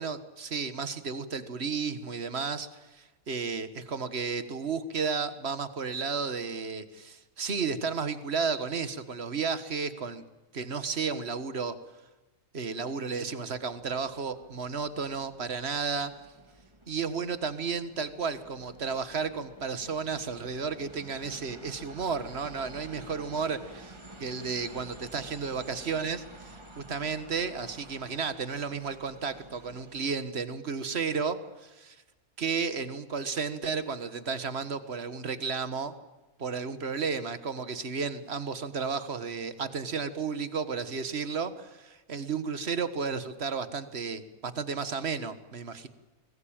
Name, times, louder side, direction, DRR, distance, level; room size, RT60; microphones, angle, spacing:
voice 1, 0.0-10.2 10.5-11.7 12.5-16.1 16.9-32.0 32.4-35.9 36.4-45.9, right 5 dB, 45° right, 12 dB, 1.7 m, -33 dB
sound 1, 13.5-30.2, right 2 dB, 20° right, 2.1 m, -51 dB
24.5 x 20.0 x 8.9 m, 1.1 s
omnidirectional pair, 1.6 m